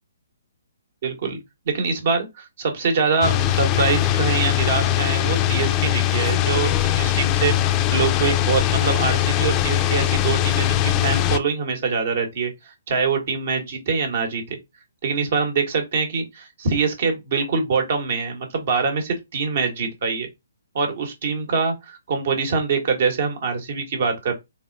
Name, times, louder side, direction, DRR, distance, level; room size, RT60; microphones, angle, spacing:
voice 1, 1.0-1.4 1.6-6.7 7.0-14.4 15.0-20.3 20.7-24.3, right 5 dB, 55° right, 1.5 m, -24 dB
sound 1, 3.2-11.4, left 12 dB, 25° left, 0.5 m, -21 dB
4.0 x 3.3 x 2.6 m
figure-of-eight pair, 135°, 0 cm